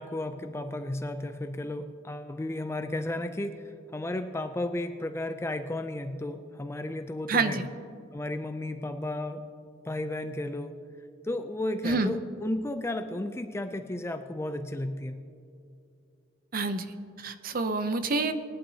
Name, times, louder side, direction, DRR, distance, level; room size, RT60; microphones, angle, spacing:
voice 1, 0.0-7.6 8.1-9.5 9.8-10.8 11.2-15.2, left 1 dB, 10° left, 8 dB, 0.3 m, -33 dB
voice 2, 7.3-7.7 11.8-12.1 16.5-18.3, right 3 dB, 45° right, 10 dB, 0.6 m, -28 dB
20.5 x 11.0 x 2.8 m, 2.5 s
head